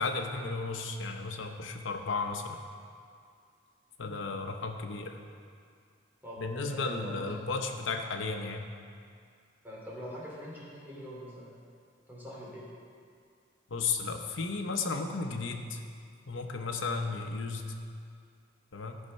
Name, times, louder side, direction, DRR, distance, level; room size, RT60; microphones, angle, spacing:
voice 1, 0.0-2.6 4.0-5.2 6.4-8.7 13.7-15.8 16.3-17.7 18.7-19.0, left 4 dB, 75° left, 4 dB, 0.9 m, -34 dB
voice 2, 6.2-7.2 9.6-11.6 12.1-12.6, equal, 10° right, -7 dB, 2.8 m, -43 dB
13.0 x 5.6 x 5.3 m, 2.3 s
head